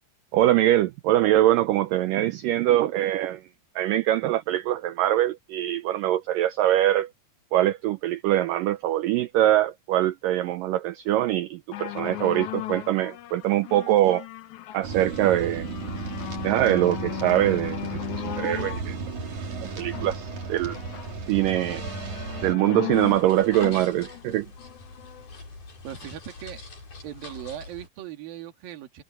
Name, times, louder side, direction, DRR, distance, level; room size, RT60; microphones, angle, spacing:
voice 1, 0.3-3.4 3.8-7.1 7.5-14.3 14.7-15.7 16.4-19.0 19.8-20.8 21.3-21.8 22.4-24.5, right 13 dB, 90° right, 1.9 m, -23 dB
sound 1, 11.7-25.3 26.0-26.1, left 15 dB, 70° left, 1.8 m, -37 dB
sound 2, 14.8-22.5, right 4 dB, 50° right, 4.7 m, -34 dB
sound 3, 22.9-27.9, left 3 dB, 50° left, 8.7 m, -44 dB
voice 2, 25.8-26.6 27.0-29.0, right 11 dB, 65° right, 3.8 m, -39 dB
omnidirectional pair, 4.7 m